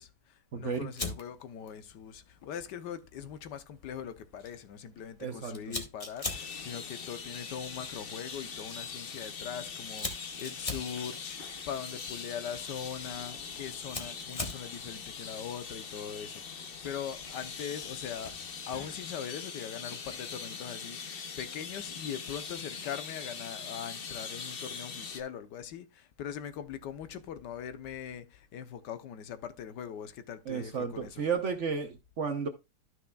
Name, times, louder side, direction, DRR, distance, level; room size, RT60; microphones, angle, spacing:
voice 1, 0.0-18.4 18.7-31.3, left 8 dB, 90° left, 1.5 m, -41 dB
voice 2, 0.5-0.9 5.2-5.8 30.5-32.5, right 6 dB, 55° right, 1.0 m, -33 dB
Fire, 0.9-19.1, left 3 dB, 25° left, 1.1 m, -45 dB
sound 1, 6.3-25.2, left 6 dB, 45° left, 0.8 m, -42 dB
12.5 x 6.0 x 2.3 m
omnidirectional pair, 1.8 m